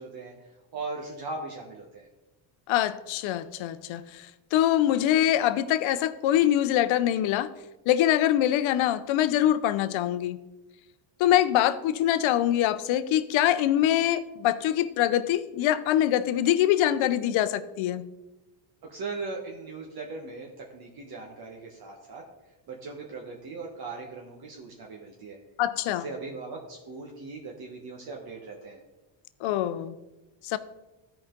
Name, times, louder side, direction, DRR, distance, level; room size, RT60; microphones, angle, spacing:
voice 1, 0.0-2.1 18.8-22.2 22.7-25.4 25.9-28.8, right 3 dB, 50° right, 1.3 m, -39 dB
voice 2, 2.7-7.5 7.9-10.4 11.2-18.1 25.6-26.1 29.4-29.9 30.4-30.6, left 12 dB, 70° left, 0.7 m, -24 dB
13.5 x 5.0 x 3.8 m
cardioid pair, 130°, 49 cm